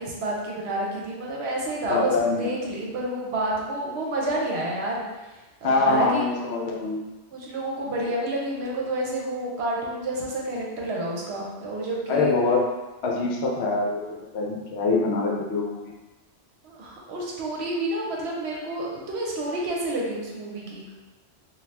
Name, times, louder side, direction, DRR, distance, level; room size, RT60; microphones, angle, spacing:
voice 1, 0.0-5.0 5.6-6.2 7.3-12.3 16.6-20.9, right 1 dB, 70° right, -3 dB, 0.9 m, -29 dB
voice 2, 1.9-2.5 5.6-7.0 12.1-12.7 13.0-14.0 14.3-15.9, left 3 dB, 70° left, -1 dB, 0.8 m, -24 dB
2.7 x 2.3 x 3.2 m, 1.1 s
omnidirectional pair, 1.2 m